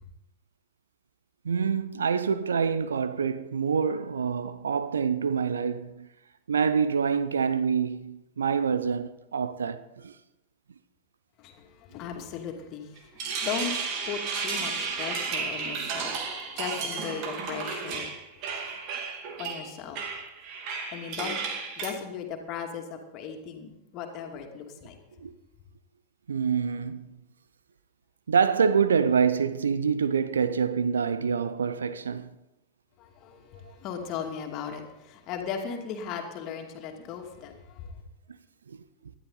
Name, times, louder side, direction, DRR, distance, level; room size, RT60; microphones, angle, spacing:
voice 1, 1.4-6.1 6.5-10.1 25.2-25.3 26.3-27.2 28.3-32.3 38.7-38.8, right 6 dB, 70° right, 0.7 m, -26 dB
voice 2, 11.4-13.0 13.4-13.7 14.0-18.0 18.5-18.8 19.4-20.0 20.9-21.4 21.8-25.0 33.0-37.9, left 7 dB, 40° left, 2.5 m, -37 dB
sound 1, 13.0-21.9, right 5 dB, 45° right, 2.4 m, -33 dB
19.0 x 12.5 x 4.0 m
figure-of-eight pair, 90°, 0 cm